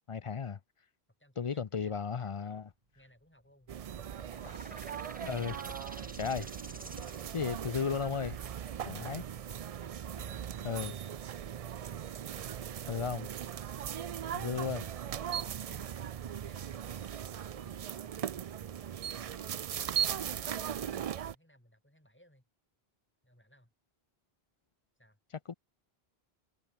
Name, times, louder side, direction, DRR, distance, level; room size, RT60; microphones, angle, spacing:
voice 1, 0.1-0.6 1.4-2.7 5.2-5.5 6.2-6.5 7.3-8.4 8.9-9.2 10.6-10.9 12.9-13.3 14.3-14.8 25.5-25.6, left 6 dB, 40° left, 0.5 m, -34 dB
voice 2, 1.2-2.5 2.9-4.7 5.2-6.1 8.8-9.3 9.8-11.2 14.4-18.5 18.7-22.4 23.2-23.7 25.0-25.2, equal, 10° left, 5.5 m, -63 dB
Walk footsteps, 2.7-10.9, right 1 dB, 30° right, 3.8 m, -54 dB
sound 1, 3.7-21.3, right 9 dB, 55° right, 0.4 m, -39 dB
sound 2, 4.3-11.6, equal, 10° right, 3.7 m, -52 dB
omnidirectional pair, 1.0 m